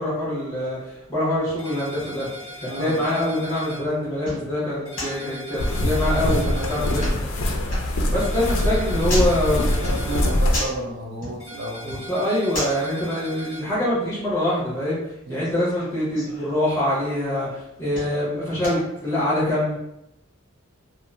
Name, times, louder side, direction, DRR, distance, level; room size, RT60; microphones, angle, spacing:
voice 1, 0.0-2.3 2.6-7.3 8.1-9.7 11.8-15.0 15.3-19.8, left 1 dB, 15° left, -9 dB, 1.1 m, -24 dB
sound 1, 0.6-19.2, left 1 dB, 40° left, 1.0 m, -39 dB
sound 2, 1.6-3.8 4.9-7.1 8.1-10.3 11.4-13.6, right 1 dB, 15° right, 1.1 m, -40 dB
voice 2, 2.7-3.1 6.6-7.2 9.8-12.0 15.3-15.5, right 1 dB, 50° right, -2 dB, 0.4 m, -32 dB
Walking on a Sidewalk Atmo, 5.6-10.6, left 1 dB, 70° left, 0.4 m, -23 dB
2.8 x 2.1 x 2.4 m, 0.88 s
head